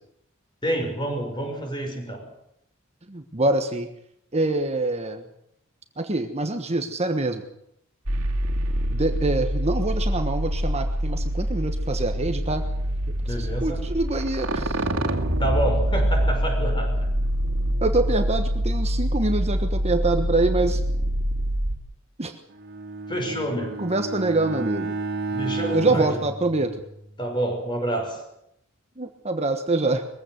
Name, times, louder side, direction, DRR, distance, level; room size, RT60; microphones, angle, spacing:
voice 1, 0.6-2.3 13.3-13.9 15.4-17.1 23.1-23.9 25.3-26.1 27.2-28.2, right 1 dB, 25° left, 3 dB, 5.8 m, -28 dB
voice 2, 3.1-3.9 4.3-5.2 6.0-7.4 8.9-12.6 13.4-14.9 17.8-20.8 22.2-22.4 23.8-24.9 25.7-26.8 29.0-30.0, right 2 dB, 30° right, 6 dB, 1.3 m, -25 dB
sound 1, 8.1-21.8, equal, 75° right, 2.5 m, -25 dB
Bowed string instrument, 22.5-27.2, right 3 dB, 50° right, 2.8 m, -32 dB
22.0 x 15.5 x 8.0 m, 0.75 s
head